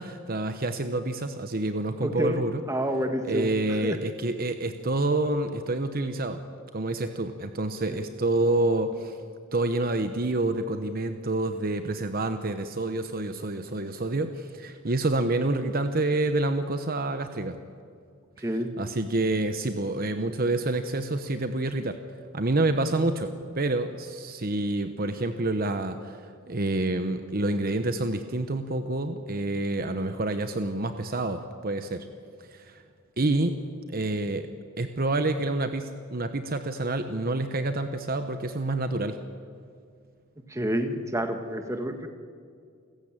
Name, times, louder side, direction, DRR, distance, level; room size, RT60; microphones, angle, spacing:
voice 1, 0.0-2.6 3.2-6.5 6.7-9.2 9.5-17.6 18.4-18.5 18.8-22.0 22.3-26.2 26.5-32.1 32.5-32.8 33.2-33.5 33.9-34.5 34.8-39.2, right 2 dB, 45° right, 8 dB, 1.0 m, -28 dB
voice 2, 2.0-3.5 3.8-4.0 7.9-8.0 18.4-18.7 40.5-42.1, equal, 15° right, 6 dB, 1.6 m, -28 dB
29.0 x 15.0 x 9.0 m, 2.2 s
head